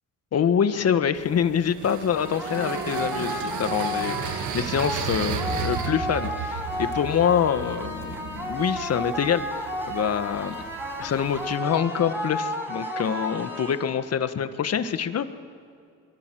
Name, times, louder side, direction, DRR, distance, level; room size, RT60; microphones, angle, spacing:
voice 1, 0.3-9.4 9.9-10.5 11.0-15.3, left 8 dB, 55° left, 10 dB, 1.5 m, -25 dB
sound 1, 1.2-11.6, right 8 dB, 80° right, 1.6 m, -35 dB
sound 2, 2.1-14.1, left 1 dB, 5° right, 6.3 m, -33 dB
27.0 x 23.5 x 7.7 m, 2.4 s
cardioid pair, 90°, 30 cm